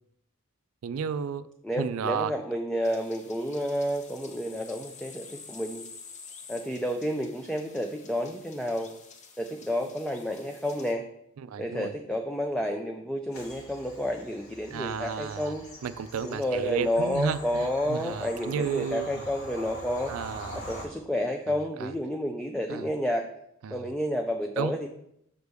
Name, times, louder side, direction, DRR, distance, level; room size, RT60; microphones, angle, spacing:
voice 1, 0.8-1.5 1.8-2.3 11.4-11.9 14.7-15.5 15.8-19.2 20.1-20.6 21.8-21.9 22.7-22.9 23.6-23.8 24.6-24.9, right 6 dB, 85° right, 14 dB, 0.4 m, -32 dB
voice 2, 1.6-5.8 6.5-8.9 9.4-11.1 11.6-15.6 16.2-20.1 20.5-23.3 23.7-24.9, equal, 5° left, 3 dB, 0.3 m, -30 dB
sound 1, 2.8-10.9, left 5 dB, 35° left, 0.7 m, -49 dB
Bird vocalization bird call bird song / Train, 13.3-20.8, equal, 80° left, 1.9 m, -44 dB
6.6 x 5.2 x 3.4 m, 0.74 s
head